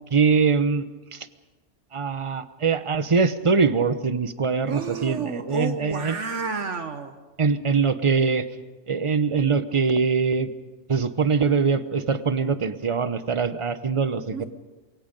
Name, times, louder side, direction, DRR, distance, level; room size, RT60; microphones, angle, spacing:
voice 1, 0.1-0.8 1.1-1.3 1.9-6.2 7.4-8.5 8.9-10.5 10.9-14.4, right 5 dB, 30° right, 12 dB, 0.8 m, -23 dB
voice 2, 4.7-7.1 14.3-14.4, right 5 dB, 65° right, 8 dB, 1.5 m, -30 dB
28.0 x 23.0 x 5.3 m, 1.2 s
omnidirectional pair, 1.3 m